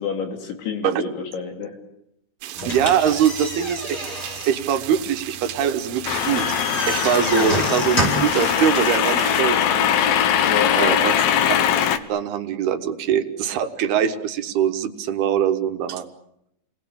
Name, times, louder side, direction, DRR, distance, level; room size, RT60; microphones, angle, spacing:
voice 1, 0.0-1.8 7.3-7.6 10.4-11.0, left 6 dB, 90° left, 5 dB, 5.4 m, -28 dB
sound 1, 2.4-9.4, right 12 dB, 85° right, 3.5 m, -36 dB
sound 2, 2.6-8.4, equal, 20° left, 7.6 m, -29 dB
voice 2, 2.7-4.1 4.5-6.5 6.9-9.9 10.8-11.2 12.1-16.0, right 9 dB, 70° right, 7 dB, 3.0 m, -22 dB
sound 3, 6.1-12.0, left 9 dB, 70° left, 2.7 m, -21 dB
29.5 x 20.0 x 8.7 m, 0.79 s
omnidirectional pair, 5.1 m